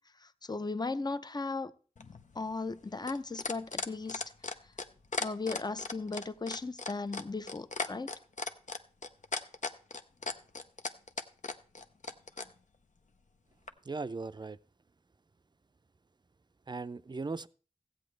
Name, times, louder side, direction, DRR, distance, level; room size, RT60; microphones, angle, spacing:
voice 1, 0.4-1.7 2.4-4.2 5.2-8.1, left 3 dB, 30° left, 0.6 m, -36 dB
sound 1, 2.0-12.5 13.7-13.8, left 3 dB, 65° left, 0.7 m, -37 dB
voice 2, 13.9-14.6 16.7-17.5, right 3 dB, 30° right, 0.5 m, -38 dB
15.0 x 8.4 x 3.3 m
wide cardioid pair, 50°, 14 cm